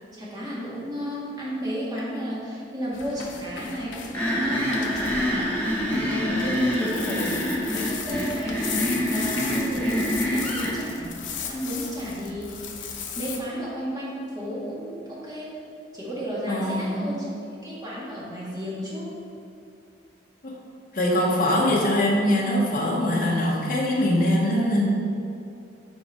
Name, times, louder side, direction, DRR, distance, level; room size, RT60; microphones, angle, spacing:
voice 1, 0.1-5.5 5.9-11.1 11.4-12.7 13.2-15.5 15.9-17.3 17.6-19.0, equal, 20° right, -7 dB, 1.7 m, -32 dB
sound 1, 2.9-13.4, left 6 dB, 80° left, 0.7 m, -36 dB
sound 2, 4.1-10.8, equal, 10° left, 1.1 m, -26 dB
voice 2, 16.5-17.1 20.4-20.6 20.9-24.8, left 1 dB, 45° left, -4 dB, 1.1 m, -22 dB
7.8 x 4.6 x 4.4 m, 2.6 s
head